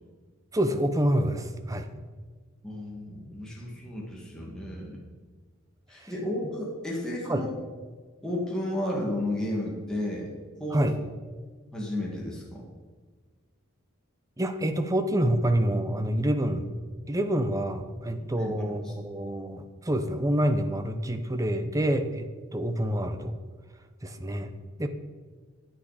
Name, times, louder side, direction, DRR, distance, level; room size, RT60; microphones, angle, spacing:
voice 1, 0.5-1.9 6.0-6.1 7.3-7.5 10.7-11.0 14.4-16.7 17.1-23.3 24.0-24.5 24.8-24.9, right 1 dB, 15° right, 8 dB, 0.7 m, -27 dB
voice 2, 2.6-5.0 5.9-7.5 8.2-10.3 10.6-10.8 11.7-12.6 18.2-18.9, left 1 dB, 5° left, -4 dB, 1.8 m, -33 dB
9.8 x 9.1 x 4.9 m, 1.4 s
head